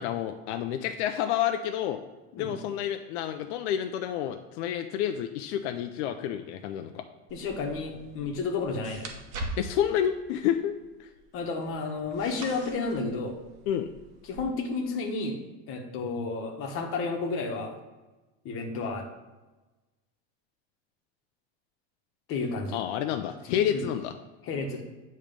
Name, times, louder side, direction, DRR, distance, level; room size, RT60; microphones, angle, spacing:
voice 1, 0.0-2.0 2.4-7.0 9.6-11.1 13.7-13.9 22.7-24.1, left 10 dB, 80° left, 7 dB, 0.5 m, -29 dB
voice 2, 7.3-9.1 11.3-13.4 14.2-15.4 15.7-17.8 18.4-19.1 22.3-22.8 23.5-23.8 24.4-24.8, left 3 dB, 40° left, 1 dB, 1.1 m, -31 dB
sound 1, 7.3-14.4, right 2 dB, 80° right, 1.1 m, -43 dB
8.7 x 3.2 x 5.1 m, 1.1 s
cardioid pair, 155°, 34 cm